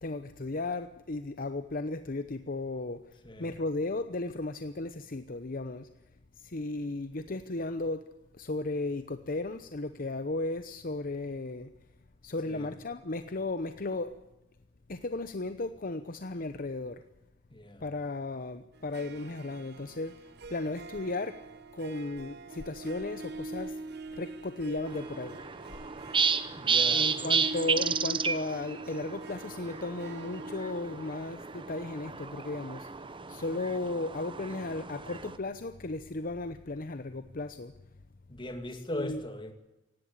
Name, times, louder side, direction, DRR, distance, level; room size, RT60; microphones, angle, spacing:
voice 1, 0.0-3.0 3.4-5.9 6.4-8.1 8.4-11.7 12.2-14.2 14.9-17.0 17.8-20.2 20.5-21.4 21.7-23.8 24.1-25.4 26.9-32.9 33.3-37.7 38.9-39.2, left 2 dB, 50° left, 11 dB, 0.9 m, -35 dB
voice 2, 3.2-3.6 12.5-12.7 17.5-17.8 26.5-27.3 38.3-39.5, left 1 dB, 25° left, 7 dB, 2.6 m, -39 dB
Harp, 18.7-34.1, right 2 dB, 60° right, 1.0 m, -44 dB
sound 1, 24.9-35.4, right 6 dB, 25° right, 1.0 m, -32 dB
17.5 x 17.0 x 9.8 m, 0.93 s
head